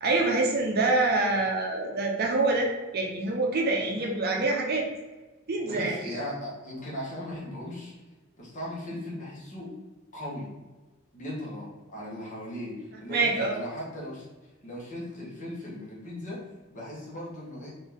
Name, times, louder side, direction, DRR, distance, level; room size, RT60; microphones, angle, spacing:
voice 1, 0.0-2.7 2.9-4.9 5.5-6.2 13.1-13.6, right 2 dB, 45° right, 0 dB, 0.6 m, -26 dB
voice 2, 5.6-7.9 8.4-9.7 10.1-10.5 11.1-14.3 14.6-16.4 16.7-17.7, left 1 dB, 35° left, -5 dB, 1.3 m, -38 dB
4.1 x 2.7 x 3.5 m, 1.2 s
head